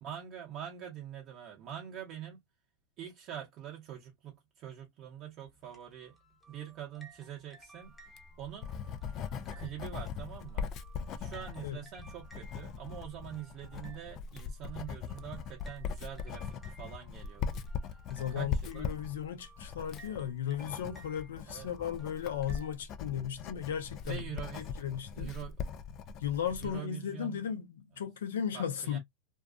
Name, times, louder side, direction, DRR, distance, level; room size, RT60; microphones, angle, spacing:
voice 1, 0.0-2.4 3.0-6.2 6.5-8.0 8.4-8.7 9.5-10.7 11.2-17.6 18.3-18.9 21.5-21.7 24.0-24.8 25.1-25.6 26.6-27.4 28.5-29.0, right 10 dB, 45° right, 0.8 m, -44 dB
sound 1, 5.5-22.7, right 2 dB, 5° left, 0.9 m, -58 dB
Writing, 8.0-26.8, left 6 dB, 40° left, 0.4 m, -40 dB
voice 2, 18.1-24.2 24.6-25.3 26.2-29.0, left 9 dB, 80° left, 0.7 m, -36 dB
2.5 x 2.3 x 2.4 m
hypercardioid pair, 120°, 0 cm